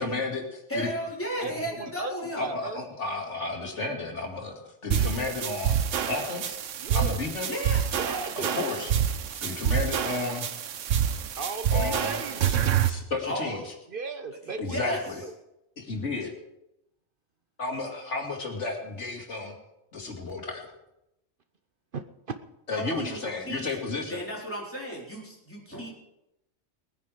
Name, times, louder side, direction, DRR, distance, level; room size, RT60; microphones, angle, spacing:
voice 1, 0.0-0.9 2.3-4.5 4.8-5.8 6.1-6.6 6.9-7.5 8.4-8.9 9.4-10.5 11.7-12.1 12.4-12.5 12.8-13.7 14.6-15.2 15.8-16.3 17.6-19.5 19.9-20.7 22.7-24.2, left 3 dB, 70° left, 2 dB, 2.7 m, -32 dB
voice 2, 0.7-2.5 7.5-7.8 13.2-13.6 14.7-15.0 22.7-23.7 24.1-25.9, equal, 10° left, -4 dB, 3.9 m, -34 dB
voice 3, 1.4-2.8 6.8-7.2 7.9-8.5 11.4-12.6 13.9-14.8 15.2-15.3 21.9-22.3 22.9-23.0, right 4 dB, 50° right, 9 dB, 0.9 m, -36 dB
sound 1, 4.9-12.9, right 9 dB, 80° right, 1.2 m, -27 dB
19.5 x 9.9 x 5.0 m, 0.88 s
omnidirectional pair, 1.3 m